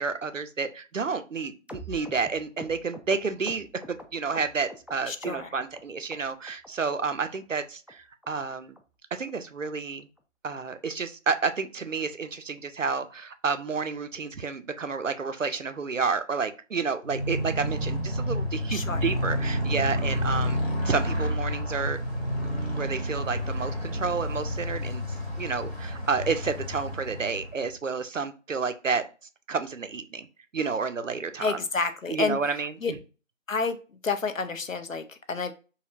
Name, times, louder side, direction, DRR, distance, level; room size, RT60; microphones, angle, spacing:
voice 1, 0.0-8.7 9.1-10.1 10.4-22.0 22.7-25.0 25.4-29.0 29.5-30.3 30.5-31.6 32.1-33.0, right 5 dB, 70° right, 9 dB, 0.5 m, -30 dB
sound 1, 1.7-4.9 5.2-5.8 6.1-6.7 7.0-7.1 7.3-7.6 7.9-8.0 8.2-8.4 8.7-8.8 9.1-9.3 9.6-9.7 10.0-10.2 10.5-10.6 10.9-11.1 11.4-11.5, equal, 5° right, 0.3 m, -44 dB
voice 2, 5.1-5.5 18.7-19.0 31.4-32.9 33.5-33.8 34.0-35.5, left 4 dB, 75° left, 9 dB, 0.6 m, -30 dB
Motorcycle, 17.0-27.7, equal, 50° left, 1.0 m, -30 dB
3.2 x 2.7 x 2.5 m, 0.33 s
figure-of-eight pair, 180°, 40 cm